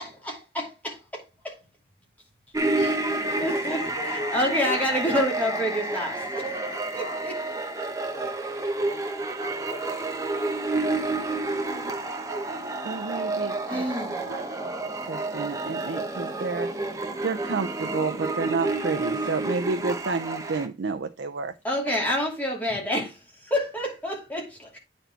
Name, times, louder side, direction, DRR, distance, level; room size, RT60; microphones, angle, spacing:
voice 1, 0.0-0.9 2.7-3.8 4.1-6.5 6.9-7.3 13.7-14.2 21.6-24.8, equal, 10° left, 2.7 m, -28 dB
sound 1, 2.5-20.7, right 2 dB, 20° right, 0.8 m, -30 dB
voice 2, 3.3-5.0 6.5-7.2 8.0-13.4 13.9-15.1, left 1 dB, 55° left, 2.4 m, -44 dB
voice 3, 12.8-13.8 14.2-14.4 15.1-16.7 17.2-21.5, right 4 dB, 80° right, 0.5 m, -30 dB
9.2 x 4.3 x 4.4 m
head